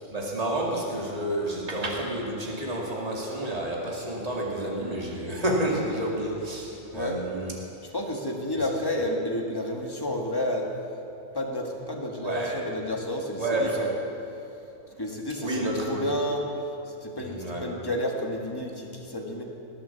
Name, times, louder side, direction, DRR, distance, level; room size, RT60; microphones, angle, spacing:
voice 1, 0.1-7.5 12.1-12.6 13.4-13.8 15.4-16.0 17.2-17.7, right 1 dB, 30° right, -3 dB, 2.3 m, -30 dB
voice 2, 7.9-10.7 11.3-13.9 14.9-16.4 16.9-19.4, left 1 dB, 20° left, 0 dB, 1.7 m, -30 dB
20.0 x 8.6 x 7.1 m, 2.9 s
omnidirectional pair, 1.3 m